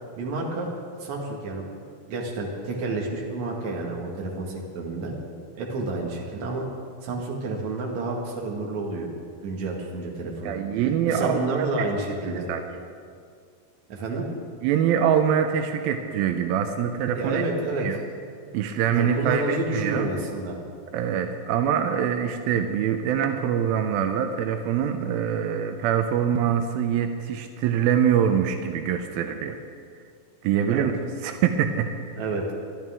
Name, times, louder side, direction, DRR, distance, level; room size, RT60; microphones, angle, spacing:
voice 1, 0.2-0.7 1.0-1.7 2.1-5.1 5.6-6.6 7.0-9.1 9.4-10.5 11.0-12.4 13.9-14.3 17.1-17.9 18.9-20.6 30.7-30.9 32.1-32.5, right 3 dB, 55° right, -1 dB, 2.9 m, -30 dB
voice 2, 10.4-11.9 12.3-12.6 14.6-17.4 17.8-18.0 18.5-20.1 20.9-29.6 30.4-30.9 31.2-31.9, right 8 dB, 85° right, 6 dB, 2.5 m, -24 dB
22.5 x 12.5 x 3.6 m, 2.2 s
omnidirectional pair, 4.3 m